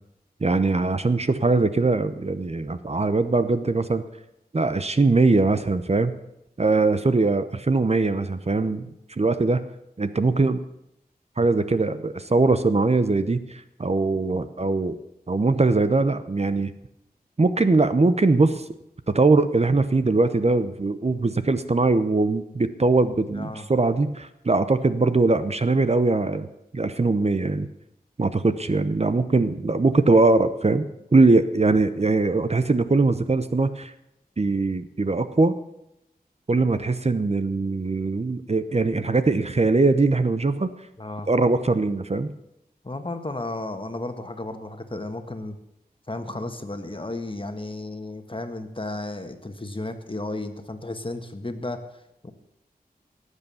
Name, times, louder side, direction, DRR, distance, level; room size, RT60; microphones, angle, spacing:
voice 1, 0.4-4.0 4.5-6.1 6.6-8.9 9.2-9.6 10.0-10.6 11.4-15.0 15.3-16.7 17.4-18.6 19.1-26.5 26.7-27.7 28.2-30.9 31.1-33.9 34.4-35.5 36.5-40.7 41.3-42.3, right 3 dB, 40° right, 11 dB, 0.8 m, -21 dB
voice 2, 23.3-23.6 41.0-41.3 42.8-45.6 46.1-52.3, left 2 dB, 35° left, 7 dB, 1.7 m, -33 dB
18.0 x 8.3 x 7.1 m, 0.84 s
wide cardioid pair, 50°, 16 cm